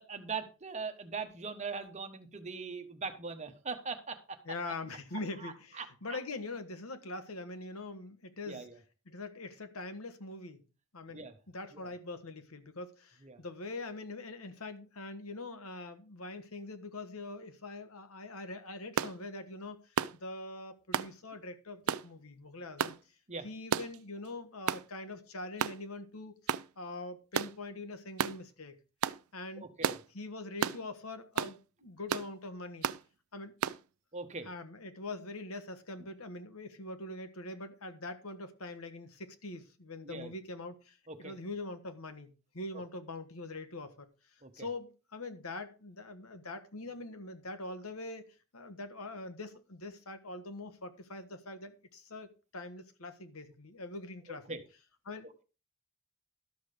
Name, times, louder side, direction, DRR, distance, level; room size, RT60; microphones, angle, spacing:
voice 1, 0.1-4.2 5.4-6.2 8.5-8.7 11.1-11.3 11.8-11.9 13.2-13.4 23.3-23.4 29.6-30.0 34.1-34.5 40.0-40.3 41.1-41.3 44.4-44.7 54.3-54.6, right 4 dB, 30° right, 1.2 m, -41 dB
voice 2, 4.4-8.7 9.0-10.6 10.9-22.9 23.4-26.3 26.8-28.8 29.3-29.7 30.1-32.9 33.3-33.5 34.4-44.1 44.5-48.2 48.5-54.6 55.0-55.3, left 2 dB, 85° left, 1.4 m, -43 dB
sound 1, 19.0-19.2 20.0-20.2 20.9-21.1 21.9-22.1 22.8-23.0 23.7-24.0 24.7-24.9 25.6-25.8 26.5-26.7 27.3-27.5 28.2-28.4 29.0-29.2 29.8-30.0 30.6-30.8 31.4-31.6 32.1-32.3 32.8-33.0 33.6-33.8, right 8 dB, 85° right, 0.4 m, -32 dB
12.5 x 6.3 x 5.1 m
head